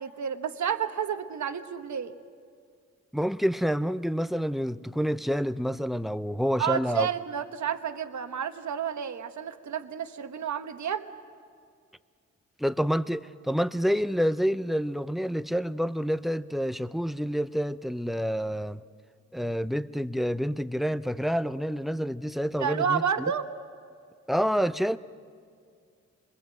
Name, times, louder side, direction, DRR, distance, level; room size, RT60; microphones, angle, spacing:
voice 1, 0.0-2.1 6.6-11.1 22.6-23.4, right 8 dB, 70° right, 1.2 m, -30 dB
voice 2, 3.1-7.1 12.6-18.8 19.3-23.0 24.3-25.0, equal, ahead, 0.6 m, -28 dB
26.5 x 21.5 x 7.6 m
cardioid pair, 70°, 30 cm